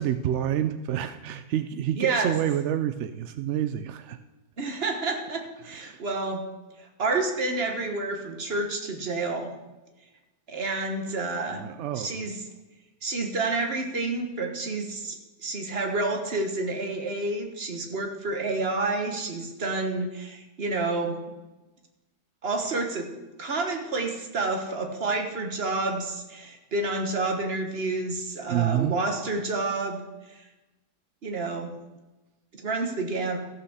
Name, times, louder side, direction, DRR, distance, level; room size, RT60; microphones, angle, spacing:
voice 1, 0.0-4.2 5.8-6.0 11.5-12.2 28.5-28.9, right 10 dB, 70° right, 10 dB, 0.6 m, -28 dB
voice 2, 1.9-2.3 4.6-6.4 6.8-9.5 10.5-11.6 11.9-12.4 13.0-21.2 22.4-23.1 23.4-30.0 30.3-30.4 31.2-31.7 32.5-33.4, right 3 dB, 40° right, 4 dB, 1.5 m, -29 dB
14.0 x 5.8 x 6.4 m, 1.1 s
omnidirectional pair, 1.7 m